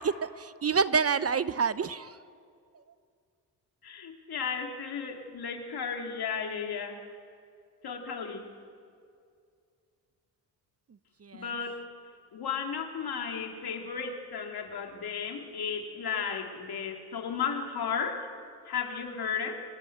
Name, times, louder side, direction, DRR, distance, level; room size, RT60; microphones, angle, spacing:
voice 1, 0.0-2.1 11.3-11.5, right 5 dB, 35° right, 15 dB, 0.8 m, -27 dB
voice 2, 3.8-7.0 7.8-8.4 11.3-11.8 12.3-18.3 18.7-19.6, left 6 dB, 60° left, 3 dB, 3.2 m, -34 dB
29.5 x 19.0 x 8.0 m, 2.4 s
supercardioid pair, 65°, 41 cm